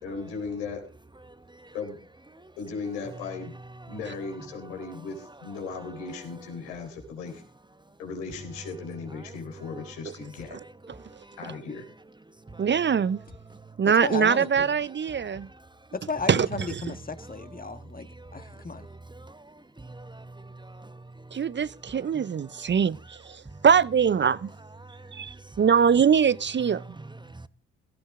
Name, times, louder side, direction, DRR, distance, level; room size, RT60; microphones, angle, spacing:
voice 1, 0.0-0.8 1.7-2.0 2.6-3.5 3.9-7.4 8.0-10.6 11.4-11.9, left 4 dB, 90° left, 3.9 m, -37 dB
voice 2, 1.3-1.7 2.3-2.5 10.5-10.6 10.9-11.4 12.5-12.7 13.5-13.7 15.3-15.5 18.2-21.4 22.1-22.3 22.6-22.7 23.5-23.6 24.8-25.6 26.8-27.5, right 2 dB, 15° right, 1.0 m, -46 dB
voice 3, 12.6-13.2 13.8-15.5 16.3-16.5 21.3-24.5 25.1-26.8, right 7 dB, 35° right, 0.6 m, -23 dB
voice 4, 14.0-14.5 16.1-18.9, left 4 dB, 25° left, 1.6 m, -34 dB
17.0 x 15.0 x 3.7 m
hypercardioid pair, 50°, 34 cm